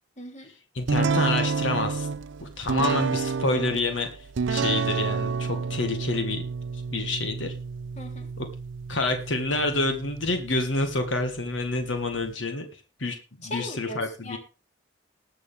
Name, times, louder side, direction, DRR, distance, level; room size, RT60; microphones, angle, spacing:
voice 1, 0.2-0.5 8.0-8.3 13.4-14.4, left 1 dB, 35° left, 3 dB, 2.9 m, -38 dB
voice 2, 0.8-2.1 2.4-4.1 4.5-6.4 6.9-7.5 8.4-8.5 8.9-12.7 13.0-14.4, left 2 dB, 85° left, 5 dB, 1.8 m, -28 dB
sound 1, 0.9-12.3, right 5 dB, 80° right, 0.5 m, -30 dB
20.0 x 6.8 x 3.5 m, 0.32 s
head